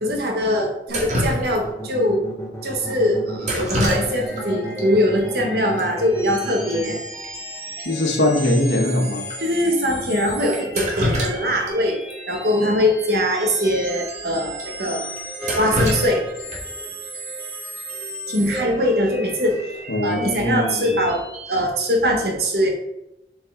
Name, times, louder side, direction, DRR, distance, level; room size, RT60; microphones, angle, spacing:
voice 1, 0.0-2.2 2.6-7.0 9.4-12.0 12.3-15.1 15.6-16.2 18.3-19.6 20.0-21.2 21.5-22.7, equal, 60° right, 2 dB, 1.4 m, -21 dB
Drip, 0.9-1.9 3.4-4.4 4.7-4.8 5.8-5.9 6.1-6.4 6.7-6.8 7.2-7.3 7.8-7.9 8.4-8.5 9.2-9.4 10.5-11.7 12.1-12.2 13.5-13.6 14.0-14.1 14.6-14.7 15.2-16.8 18.8-19.1 19.5-19.9, equal, 40° right, 1.7 m, -26 dB
sound 1, 1.5-7.0, right 1 dB, 15° left, 0.9 m, -34 dB
sound 2, 3.7-21.6, right 1 dB, 10° right, 2.7 m, -35 dB
voice 2, 7.8-9.3 19.9-20.9, left 1 dB, 75° left, 2 dB, 1.4 m, -21 dB
7.5 x 4.7 x 3.8 m, 0.90 s
head